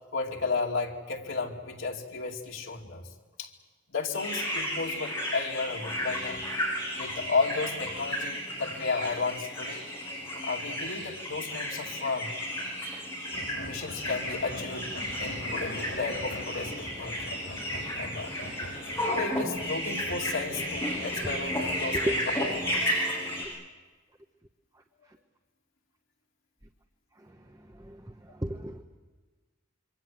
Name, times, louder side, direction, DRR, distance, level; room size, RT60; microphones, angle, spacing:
voice 1, 0.1-3.1 3.4-3.5 3.9-6.4 7.0-9.9 10.4-12.3 13.6-14.9 15.2-17.2 18.0-18.3 19.0-22.2 22.6-22.9, left 4 dB, 85° left, 0 dB, 2.7 m, -33 dB
sound 1, 4.1-23.5, equal, 10° left, 8.0 m, -33 dB
sound 2, 13.3-21.8, left 1 dB, 65° left, 5.4 m, -43 dB
voice 2, 28.4-28.8, equal, 15° right, 5 dB, 1.0 m, -31 dB
26.5 x 24.0 x 7.6 m, 1.4 s
head